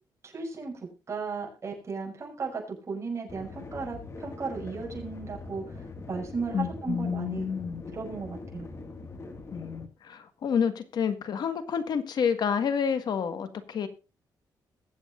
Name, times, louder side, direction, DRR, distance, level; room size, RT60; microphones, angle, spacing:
voice 1, 0.2-0.7 1.1-5.6 6.1-7.5 7.9-8.7, right 4 dB, 35° right, 0 dB, 6.6 m, -35 dB
sound 1, 3.3-9.9, left 3 dB, 35° left, 1.9 m, -42 dB
voice 2, 6.5-7.9 9.5-13.9, left 7 dB, 65° left, 10 dB, 1.7 m, -29 dB
21.5 x 8.2 x 2.5 m, 0.31 s
cardioid pair, 120°, 8 cm